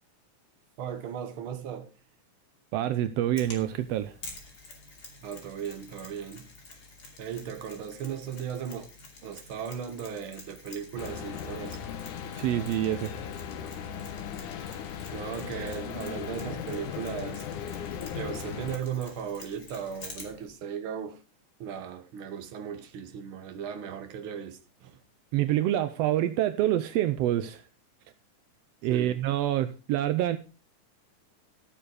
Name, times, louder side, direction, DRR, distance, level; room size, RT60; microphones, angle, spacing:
voice 1, 0.8-1.9 5.2-6.5 7.2-8.9 9.2-11.8 14.8-14.9 15.1-17.5 18.1-21.2 21.6-25.0 28.9-29.2, right 8 dB, 55° right, 1.7 m, -37 dB
voice 2, 2.7-4.1 12.3-13.2 25.3-27.6 28.8-30.4, right 13 dB, 80° right, 1.4 m, -26 dB
Mechanisms, 3.4-20.5, left 3 dB, 30° left, 3.0 m, -49 dB
sound 1, 11.0-18.8, left 8 dB, 80° left, 2.6 m, -37 dB
14.0 x 6.9 x 5.0 m
omnidirectional pair, 3.6 m